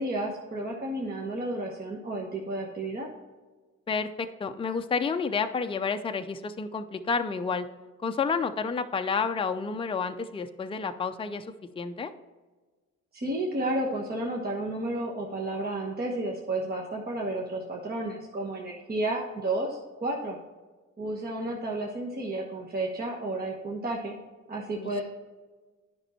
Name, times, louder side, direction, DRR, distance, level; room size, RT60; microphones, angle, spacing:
voice 1, 0.0-3.1 13.1-20.4 21.0-24.2 24.5-25.0, right 2 dB, 30° right, -1 dB, 1.3 m, -32 dB
voice 2, 3.9-7.7 8.0-11.5 11.8-12.1 24.8-25.0, left 5 dB, 20° left, 7 dB, 0.5 m, -30 dB
9.7 x 5.4 x 4.3 m, 1.3 s
cardioid pair, 90°, 30 cm